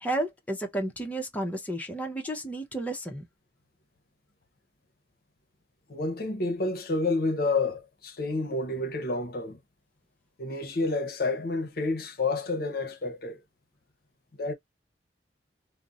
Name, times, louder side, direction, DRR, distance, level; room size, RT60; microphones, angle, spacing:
voice 1, 0.0-3.2, right 1 dB, 10° left, 0.6 m, -32 dB
voice 2, 5.9-9.6 10.4-13.4 14.4-14.5, left 3 dB, 55° left, 0.6 m, -29 dB
2.4 x 2.0 x 3.7 m
head